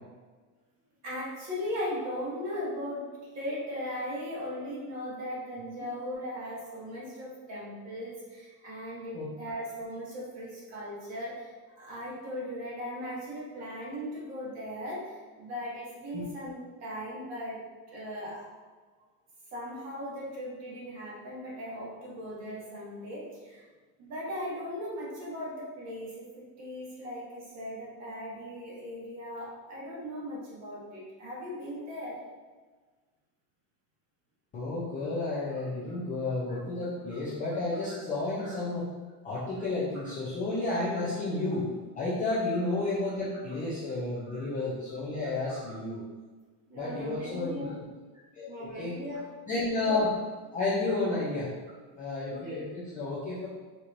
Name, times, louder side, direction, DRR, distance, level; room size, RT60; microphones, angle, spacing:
voice 1, 1.0-3.0 3.3-17.6 17.9-18.5 19.5-23.7 24.0-32.2 36.5-36.6 37.9-38.0 38.4-38.6 44.3-44.4 45.4-45.7 46.7-47.7 48.5-49.2 52.3-52.6, equal, 35° right, -6 dB, 1.3 m, -38 dB
voice 2, 34.5-38.9 39.2-46.0 46.7-47.8 48.3-48.9 49.5-50.1 50.5-51.5 52.0-53.5, left 2 dB, 20° left, -9 dB, 0.4 m, -31 dB
4.6 x 2.8 x 2.5 m, 1.4 s
cardioid pair, 155°, 46 cm